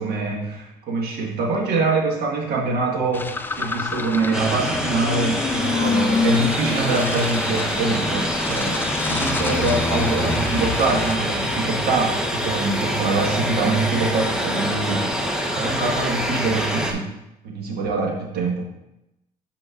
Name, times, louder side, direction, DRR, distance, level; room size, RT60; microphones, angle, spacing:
voice 1, 0.0-15.1 15.4-17.1 17.4-18.6, right 3 dB, 70° right, -1 dB, 1.5 m, -24 dB
sound 1, 3.1-12.7, left 3 dB, 10° left, 0.3 m, -27 dB
sound 2, 4.3-16.9, equal, 5° right, 0.8 m, -26 dB
8.2 x 5.2 x 2.5 m, 0.90 s
cardioid pair, 110°, 17 cm